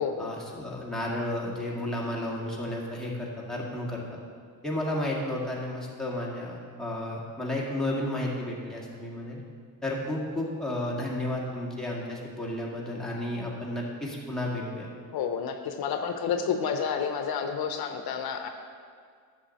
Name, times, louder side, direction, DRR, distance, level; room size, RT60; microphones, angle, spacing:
voice 1, 0.2-4.2 4.6-9.4 9.8-14.9, left 1 dB, ahead, -5 dB, 1.8 m, -32 dB
voice 2, 15.1-18.5, left 6 dB, 75° left, 6 dB, 0.7 m, -30 dB
10.0 x 7.0 x 4.1 m, 2.1 s
cardioid pair, 95°, 38 cm